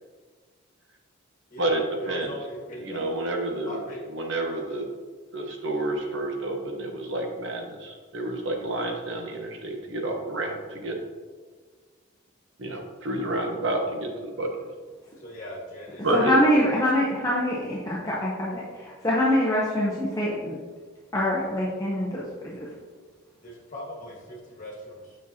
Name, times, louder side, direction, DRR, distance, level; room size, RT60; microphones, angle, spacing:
voice 1, 1.5-3.0 3.7-4.0 15.2-16.8 23.4-25.2, equal, 35° left, -2 dB, 1.5 m, -39 dB
voice 2, 2.8-3.8 4.1-4.9 5.3-11.0 12.6-14.5 16.0-16.3, right 2 dB, 60° right, 2 dB, 1.0 m, -29 dB
voice 3, 16.1-20.6 21.1-22.6, equal, 15° left, -6 dB, 0.7 m, -24 dB
7.1 x 6.1 x 2.8 m, 1.5 s
head